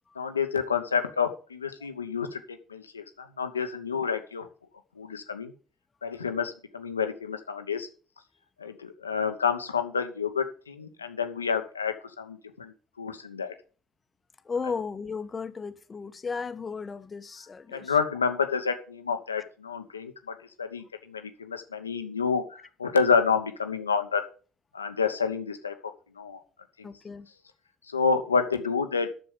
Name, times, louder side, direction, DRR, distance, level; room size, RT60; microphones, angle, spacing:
voice 1, 0.2-4.5 5.0-5.5 6.0-7.9 8.6-13.5 17.7-24.2 24.7-25.7 26.2-26.4 26.8-26.9 27.9-29.1, left 5 dB, 90° left, 1.0 m, -29 dB
voice 2, 14.4-17.9 26.8-27.3, left 5 dB, 30° left, 1.2 m, -35 dB
10.5 x 6.9 x 6.8 m
figure-of-eight pair, 55°, 0 cm